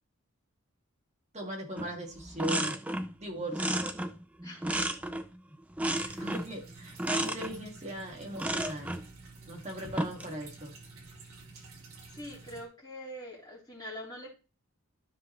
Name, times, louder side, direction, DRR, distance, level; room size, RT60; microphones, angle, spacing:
voice 1, 1.3-2.8 3.2-3.8 5.5-5.6 6.1-9.0 9.4-10.7, right 1 dB, 30° right, -1 dB, 2.2 m, -39 dB
sound 1, 1.8-1.9 2.2-3.1 3.5-5.4 5.8-6.5 7.0-7.5 8.4-9.1 9.8-10.3, right 1 dB, 5° right, 0.4 m, -32 dB
voice 2, 4.4-5.0 5.9-6.3 12.1-14.3, equal, 20° left, -6 dB, 3.6 m, -44 dB
sound 2, 5.9-12.7, right 3 dB, 70° right, 1.9 m, -50 dB
12.5 x 5.2 x 3.2 m, 0.33 s
head